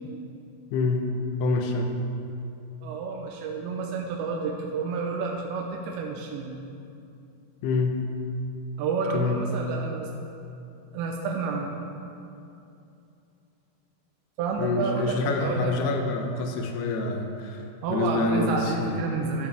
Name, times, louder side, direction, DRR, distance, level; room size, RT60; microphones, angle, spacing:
voice 1, 0.7-1.1 1.4-1.9 7.6-8.0 9.1-9.4 14.6-17.6 17.9-19.0, left 3 dB, 75° left, 4 dB, 2.7 m, -26 dB
voice 2, 2.8-6.6 8.8-10.1 10.9-11.7 14.4-15.7 17.8-19.5, right 4 dB, 85° right, 0 dB, 3.0 m, -30 dB
15.5 x 8.3 x 3.5 m, 2.7 s
omnidirectional pair, 5.2 m